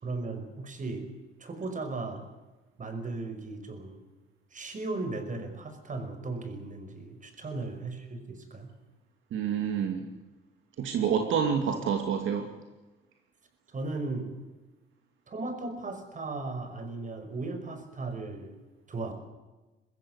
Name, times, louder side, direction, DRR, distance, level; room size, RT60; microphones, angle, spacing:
voice 1, 0.0-1.1 1.4-2.2 2.8-4.0 4.5-8.7 13.7-14.3 15.3-18.6 18.9-19.1, right 3 dB, 40° right, 8 dB, 5.5 m, -36 dB
voice 2, 9.3-10.0 10.8-12.5, right 7 dB, 80° right, 4 dB, 2.6 m, -28 dB
22.5 x 15.5 x 9.6 m, 1.2 s
cardioid pair, 90°, 20 cm